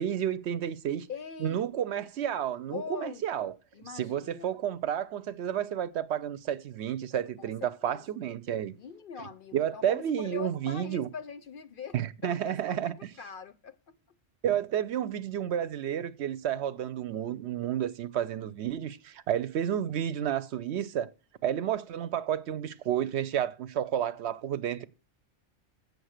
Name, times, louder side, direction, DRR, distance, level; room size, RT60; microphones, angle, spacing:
voice 1, 0.0-1.1 1.4-3.5 3.9-8.8 9.5-11.1 11.9-13.1 14.4-21.1 21.4-24.8, right 10 dB, 70° right, 0.9 m, -31 dB
voice 2, 1.1-1.6 2.7-3.2 3.7-4.6 7.4-8.1 8.8-14.0, left 7 dB, 55° left, 0.7 m, -42 dB
7.9 x 6.6 x 6.5 m
omnidirectional pair, 1.2 m